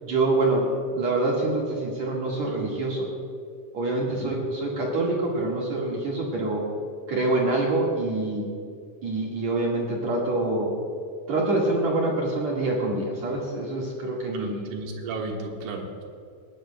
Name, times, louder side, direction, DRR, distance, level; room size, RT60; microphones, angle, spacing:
voice 1, 0.0-3.1 3.7-6.6 7.1-8.4 9.0-10.7 11.3-14.7, right 2 dB, 60° right, -4 dB, 1.9 m, -26 dB
voice 2, 14.3-16.0, right 3 dB, 75° right, 0 dB, 3.9 m, -34 dB
20.0 x 18.0 x 2.2 m, 2.3 s
omnidirectional pair, 5.7 m